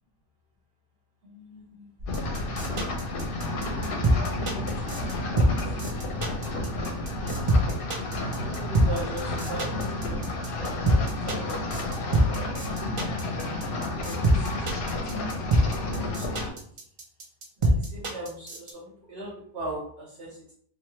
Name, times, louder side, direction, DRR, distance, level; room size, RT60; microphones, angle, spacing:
voice 1, 1.2-1.9 4.3-5.7 8.3-10.8 11.2-12.4 12.8-14.9 15.7-16.7 17.6-20.5, right 1 dB, 70° right, -6 dB, 1.2 m, -41 dB
sound 1, 2.0-18.7, right 1 dB, 50° right, 0.3 m, -24 dB
sound 2, 2.1-16.5, left 2 dB, 65° left, 0.7 m, -31 dB
3.1 x 2.1 x 2.9 m, 0.62 s
omnidirectional pair, 1.1 m